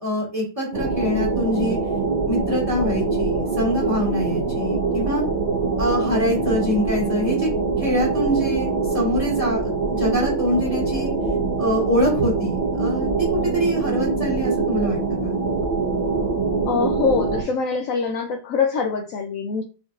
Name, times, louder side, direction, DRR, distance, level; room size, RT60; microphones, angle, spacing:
voice 1, 0.0-1.8 2.3-5.2 5.8-7.5 7.8-11.1 11.6-15.4, equal, 20° right, 2.0 m, -24 dB
sound 1, 0.7-17.4, right 4 dB, 50° right, 0.6 m, -24 dB
voice 2, 16.6-19.6, left 5 dB, 80° left, 0.7 m, -24 dB
4.5 x 4.4 x 2.4 m
omnidirectional pair, 2.0 m